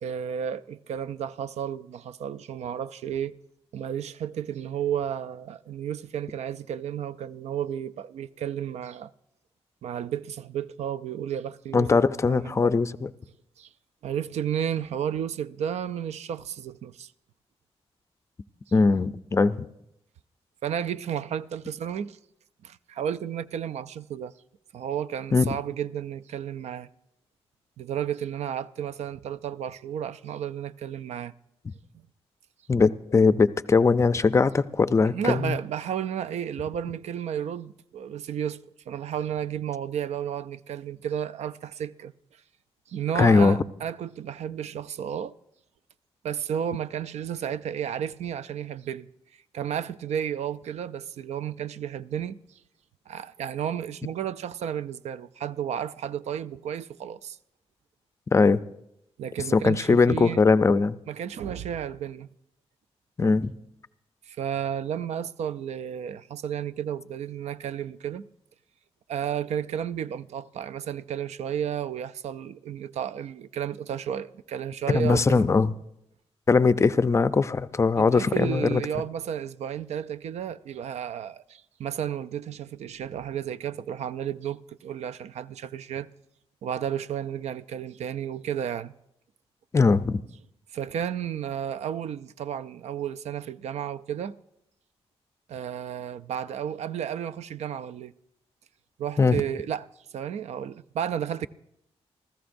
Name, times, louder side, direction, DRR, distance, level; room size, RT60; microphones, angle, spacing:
voice 1, 0.0-3.3 3.7-9.1 9.8-12.7 13.6-13.7 14.0-17.1 20.6-22.2 22.6-24.3 24.7-26.9 27.8-31.3 35.1-42.1 42.9-45.3 46.2-49.1 49.5-52.6 53.1-57.4 59.2-60.4 61.1-62.3 64.3-68.2 69.1-75.4 78.0-86.1 86.6-88.9 90.7-94.3 95.5-98.1 99.0-99.9 100.1-101.5, right 9 dB, 85° right, 0.4 m, -32 dB
voice 2, 11.7-13.1 18.7-19.7 25.3-25.5 32.7-35.6 43.2-43.6 58.3-58.6 59.5-61.0 63.2-63.5 74.9-75.7 76.5-78.8 89.7-90.2 99.2-99.4, left 4 dB, 25° left, 0.4 m, -20 dB
27.0 x 15.0 x 2.6 m
wide cardioid pair, 150°, 11 cm